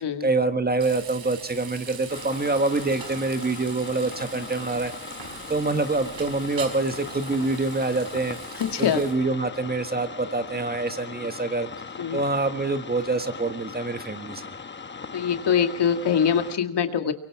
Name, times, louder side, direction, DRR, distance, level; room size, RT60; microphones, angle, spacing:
voice 1, 0.2-4.9 5.5-8.4 8.8-11.7 12.1-14.4, right 3 dB, 20° right, 8 dB, 1.5 m, -26 dB
Frying (food), 0.8-9.1, right 6 dB, 70° right, 5.2 m, -42 dB
sound 1, 2.1-16.6, left 5 dB, 25° left, 1.1 m, -39 dB
voice 2, 8.5-9.0 12.0-12.2 15.1-17.1, left 7 dB, 60° left, 7 dB, 2.0 m, -23 dB
24.0 x 23.5 x 4.7 m, 0.65 s
cardioid pair, 110°, 47 cm